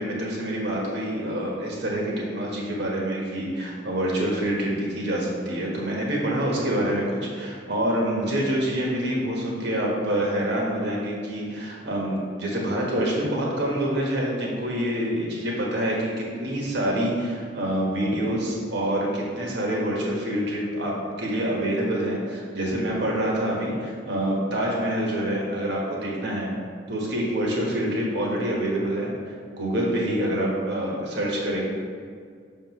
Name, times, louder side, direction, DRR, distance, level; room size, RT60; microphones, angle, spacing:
voice 1, 0.0-20.9 21.2-26.5 26.9-29.1 29.5-31.7, right 1 dB, 60° right, -3 dB, 1.4 m, -26 dB
6.3 x 5.5 x 3.1 m, 2.1 s
head